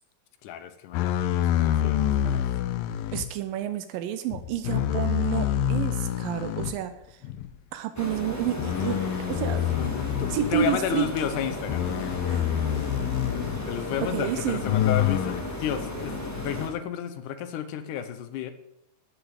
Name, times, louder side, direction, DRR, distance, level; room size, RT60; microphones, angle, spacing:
voice 1, 0.4-2.4 9.7-11.8 13.7-18.5, left 9 dB, 70° left, 11 dB, 2.2 m, -32 dB
sound 1, 0.9-3.3 4.3-6.8 7.2-7.5 8.6-10.7 11.7-13.7 14.6-15.4, left 11 dB, 90° left, 2.4 m, -27 dB
voice 2, 3.1-7.2 7.7-9.6 10.3-11.1 12.3-12.6 14.1-14.6, right 10 dB, 85° right, 10 dB, 2.4 m, -30 dB
sound 2, 7.9-16.7, left 1 dB, 10° left, 0.9 m, -34 dB
12.5 x 6.7 x 8.1 m, 0.83 s
omnidirectional pair, 4.0 m